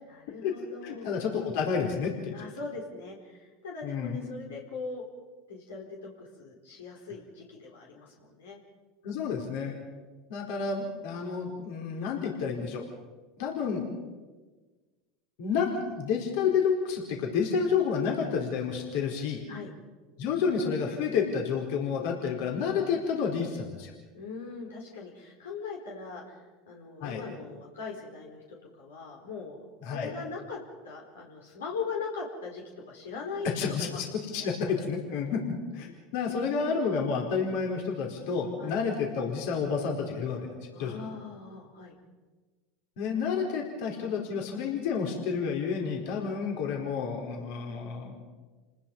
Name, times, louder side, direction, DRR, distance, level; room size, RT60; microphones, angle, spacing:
voice 1, 0.1-1.1 2.3-5.0 5.5-8.6 19.5-19.7 24.1-30.6 30.8-33.5 33.8-34.0 34.3-34.5 38.6-38.8 40.7-41.9, left 4 dB, 90° left, -1 dB, 4.7 m, -40 dB
voice 2, 0.8-2.3 3.8-4.2 9.0-9.7 10.3-12.8 13.4-13.9 15.4-19.4 20.2-23.9 27.0-27.2 29.8-30.1 33.6-35.4 35.7-40.5 40.8-41.1 43.0-48.2, left 6 dB, 70° left, 0 dB, 4.5 m, -30 dB
29.5 x 20.0 x 5.5 m, 1.3 s
hypercardioid pair, 90°, 0 cm